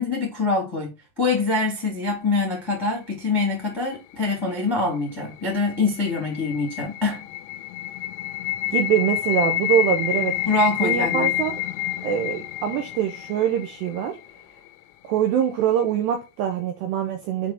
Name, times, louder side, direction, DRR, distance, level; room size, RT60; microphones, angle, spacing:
voice 1, 0.0-7.3 10.4-11.3, left 3 dB, 10° left, 1.4 m, -24 dB
sound 1, 5.3-14.3, left 14 dB, 85° left, 3.2 m, -28 dB
voice 2, 8.7-10.4 10.8-11.6 12.0-14.2 15.0-17.5, right 9 dB, 80° right, 2.6 m, -23 dB
7.7 x 3.9 x 4.4 m
omnidirectional pair, 5.9 m